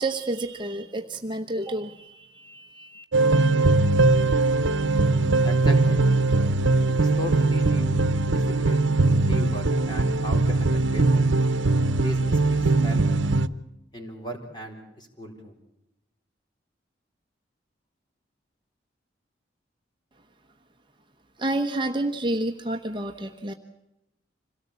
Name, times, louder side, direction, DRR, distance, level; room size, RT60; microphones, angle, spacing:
voice 1, 0.0-3.0 21.4-23.5, right 2 dB, 25° right, 4 dB, 1.0 m, -29 dB
sound 1, 3.1-13.5, right 3 dB, 85° right, 0.9 m, -21 dB
voice 2, 5.4-6.0 7.0-8.0 8.3-8.8 9.3-11.1 11.9-13.0 13.9-15.5, equal, 25° left, 2 dB, 4.1 m, -37 dB
26.5 x 18.0 x 8.3 m, 0.90 s
head